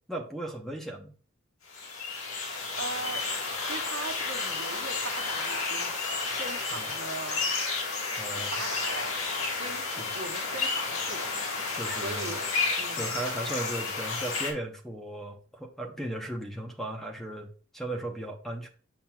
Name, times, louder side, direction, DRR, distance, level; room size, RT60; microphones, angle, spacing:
voice 1, 0.1-1.2 6.8-6.9 8.2-8.5 10.0-10.1 11.7-12.4 12.9-18.7, right 1 dB, ahead, 4 dB, 0.7 m, -36 dB
sound 1, 1.7-14.5, left 4 dB, 90° left, 1.6 m, -31 dB
voice 2, 2.5-3.2 3.6-5.9 6.2-7.6 8.3-11.3 11.6-12.4 12.8-13.0, right 3 dB, 80° right, 4 dB, 1.1 m, -40 dB
7.3 x 5.8 x 2.3 m, 0.42 s
head